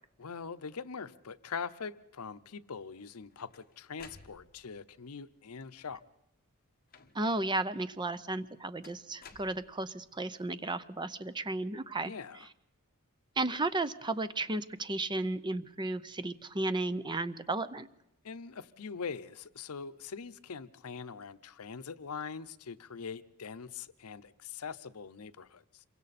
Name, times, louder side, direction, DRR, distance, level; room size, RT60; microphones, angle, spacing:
voice 1, 0.2-6.0 12.0-12.5 18.2-25.8, left 5 dB, 80° left, 14 dB, 0.7 m, -42 dB
sound 1, 3.0-4.8 5.7-6.2 6.9-7.5 8.8-10.1, left 5 dB, 40° left, 1.3 m, -56 dB
voice 2, 7.1-12.1 13.4-17.9, right 2 dB, 20° right, 14 dB, 0.6 m, -34 dB
27.5 x 23.5 x 4.2 m, 0.86 s
head